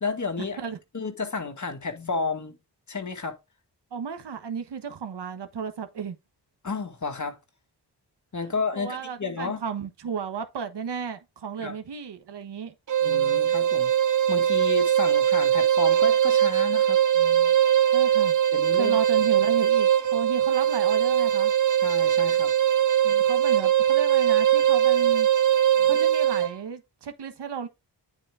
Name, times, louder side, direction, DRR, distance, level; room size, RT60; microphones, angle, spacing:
voice 1, 0.0-0.6 0.9-2.6 2.9-3.4 6.6-7.4 8.3-9.6 11.6-11.8 13.0-13.9 14.3-17.5 18.5-19.0 21.8-22.5 25.8-26.0, left 4 dB, 45° left, 1.9 m, -32 dB
voice 2, 3.9-6.1 8.4-12.7 17.9-18.3 18.7-21.5 23.0-25.3 25.8-27.7, right 6 dB, 75° right, 1.3 m, -34 dB
sound 1, 12.9-26.6, right 10 dB, 45° right, 0.7 m, -21 dB
9.1 x 4.2 x 3.5 m
cardioid pair, 50°, 42 cm